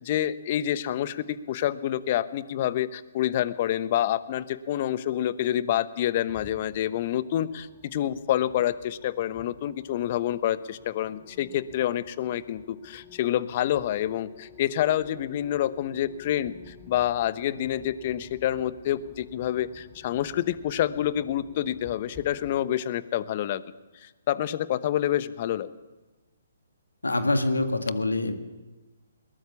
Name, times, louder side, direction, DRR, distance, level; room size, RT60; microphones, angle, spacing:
voice 1, 0.0-23.6 24.0-25.7, left 11 dB, 40° left, 15 dB, 1.0 m, -27 dB
sound 1, 6.2-22.7, left 4 dB, 15° left, 3.4 m, -52 dB
voice 2, 27.0-28.3, left 2 dB, 85° left, 7 dB, 2.1 m, -25 dB
21.5 x 19.0 x 7.1 m, 1.2 s
figure-of-eight pair, 135°, 0 cm